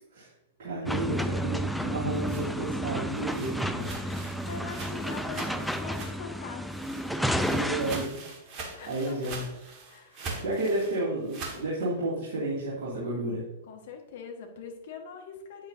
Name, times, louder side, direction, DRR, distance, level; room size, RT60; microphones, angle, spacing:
voice 1, 0.6-3.9 7.5-8.1 8.5-8.6 8.9-9.4 10.2-13.4, right 2 dB, 50° right, -9 dB, 2.5 m, -31 dB
sound 1, 0.9-8.1, equal, ahead, 0.5 m, -31 dB
sound 2, 1.9-6.4 6.7-11.6, right 4 dB, 35° right, 1.7 m, -43 dB
voice 2, 3.9-6.9 7.4-7.6 8.7-9.3 9.9-11.2 13.6-15.7, left 6 dB, 55° left, 4 dB, 1.5 m, -44 dB
8.7 x 8.4 x 2.7 m, 0.95 s
figure-of-eight pair, 100°, 0 cm